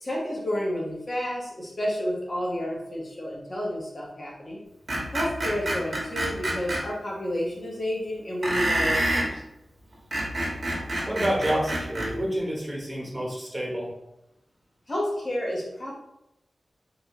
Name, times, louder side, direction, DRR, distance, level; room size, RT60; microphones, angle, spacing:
voice 1, 0.0-4.6 5.1-9.4 14.9-16.0, equal, 40° left, -4 dB, 1.4 m, -30 dB
Screech, 4.9-6.8 8.4-9.3 9.9-12.1, right 1 dB, 65° right, 1.5 m, -27 dB
voice 2, 11.0-13.9, equal, 25° right, -3 dB, 1.3 m, -28 dB
4.5 x 2.9 x 3.1 m, 0.85 s
cardioid pair, 60°, 0 cm